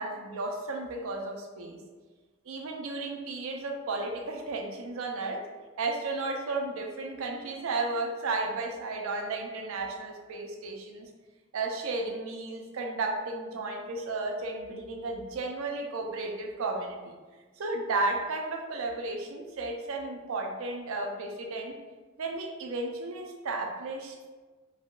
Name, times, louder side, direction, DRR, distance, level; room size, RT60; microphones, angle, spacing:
voice 1, 0.0-1.8 2.5-5.4 5.8-11.1 11.5-17.1 17.6-21.8 22.2-24.3, right 3 dB, 85° right, 2 dB, 0.4 m, -33 dB
3.4 x 2.1 x 2.4 m, 1.3 s
head